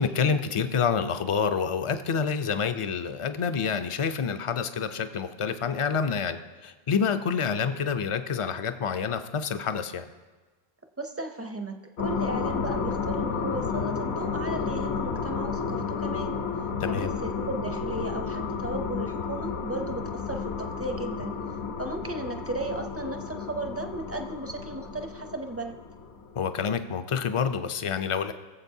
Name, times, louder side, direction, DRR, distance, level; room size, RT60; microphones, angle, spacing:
voice 1, 0.0-10.1 16.8-17.1 26.4-28.3, left 6 dB, 45° left, 9 dB, 0.4 m, -28 dB
voice 2, 11.0-16.4 16.9-21.4 21.8-25.8, right 2 dB, 20° right, 5 dB, 0.4 m, -35 dB
sound 1, 12.0-26.7, left 5 dB, 75° left, 1.1 m, -32 dB
20.5 x 7.4 x 2.7 m, 1.3 s
omnidirectional pair, 1.1 m